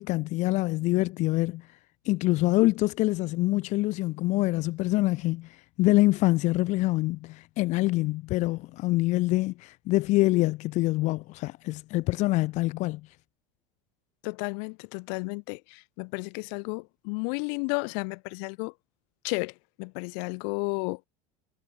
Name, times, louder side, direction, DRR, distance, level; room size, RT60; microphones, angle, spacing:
voice 1, 0.0-1.7 2.0-13.0, left 19 dB, 50° left, 4.0 m, -25 dB
voice 2, 14.2-18.7 19.2-21.0, left 40 dB or more, 65° left, 5.3 m, -33 dB
supercardioid pair, 150°, 15 cm